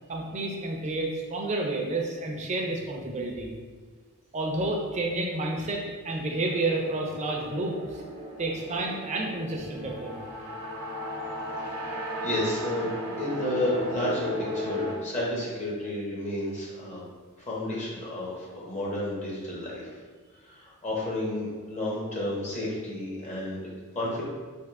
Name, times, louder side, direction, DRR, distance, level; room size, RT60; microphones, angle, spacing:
voice 1, 0.1-3.5 4.3-8.0 8.4-10.2, right 2 dB, 30° right, 0 dB, 0.5 m, -30 dB
sound 1, 6.4-15.0, equal, 70° right, 0.8 m, -36 dB
voice 2, 12.2-12.9 13.2-14.3 14.5-17.0 17.5-19.8 20.5-24.2, left 1 dB, 30° left, -5 dB, 0.8 m, -31 dB
3.5 x 2.5 x 3.5 m, 1.5 s
head